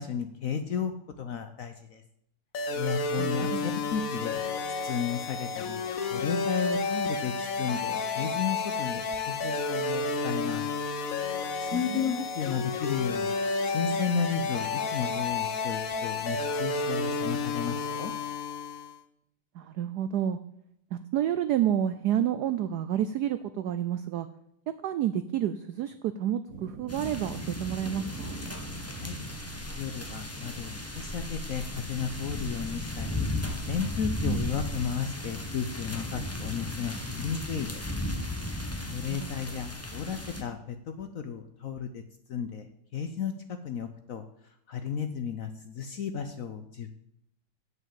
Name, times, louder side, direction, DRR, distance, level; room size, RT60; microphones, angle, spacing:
voice 1, 0.0-2.0 2.7-5.8 6.1-10.6 11.6-13.3 13.6-18.1 28.9-29.2 29.8-33.3 33.7-37.8 38.9-42.0 42.3-42.7 42.9-44.2 44.7-46.9, left 7 dB, 75° left, 8 dB, 0.7 m, -33 dB
sound 1, 2.5-19.0, left 4 dB, 55° left, 1.1 m, -31 dB
voice 2, 3.2-3.7 11.7-12.1 19.5-20.4 20.9-24.3 24.8-28.4 34.2-34.4 38.8-39.3, right 10 dB, 85° right, 12 dB, 0.8 m, -30 dB
sound 2, 26.5-38.7, right 5 dB, 50° right, 1.1 m, -47 dB
sound 3, 26.9-40.4, left 2 dB, 15° left, 0.6 m, -35 dB
8.1 x 8.1 x 7.6 m, 0.76 s
omnidirectional pair, 2.3 m